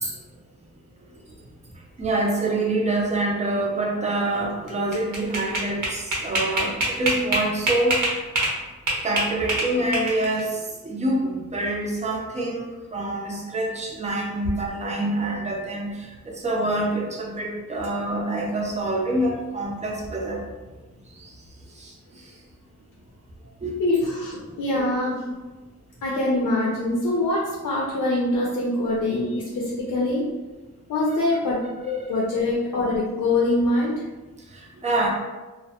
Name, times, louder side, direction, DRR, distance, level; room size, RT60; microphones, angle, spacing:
voice 1, 2.0-8.2 9.0-20.4 21.2-21.3 21.8-22.2 23.6-23.8 24.7-24.8 31.3-31.4 34.5-35.1, right 2 dB, 20° right, -1 dB, 0.5 m, -26 dB
sound 1, 4.7-8.6 8.9-10.4, right 1 dB, 70° right, 0.8 m, -24 dB
voice 2, 23.8-25.3 26.0-30.2 30.9-34.0, left 2 dB, 75° left, -4 dB, 0.5 m, -24 dB
2.2 x 2.0 x 2.8 m, 1.2 s
wide cardioid pair, 115°, 31 cm